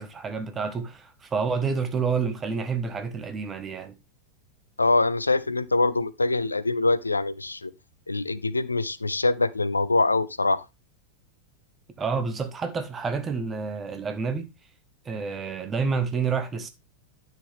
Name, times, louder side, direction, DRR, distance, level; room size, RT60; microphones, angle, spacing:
voice 1, 0.0-4.0 12.0-14.5 15.0-16.7, right 5 dB, 20° right, 1.3 m, -29 dB
voice 2, 4.8-7.7 8.1-10.6, left 3 dB, 80° left, 0.4 m, -24 dB
9.9 x 6.2 x 3.5 m
figure-of-eight pair, 90°, 0 cm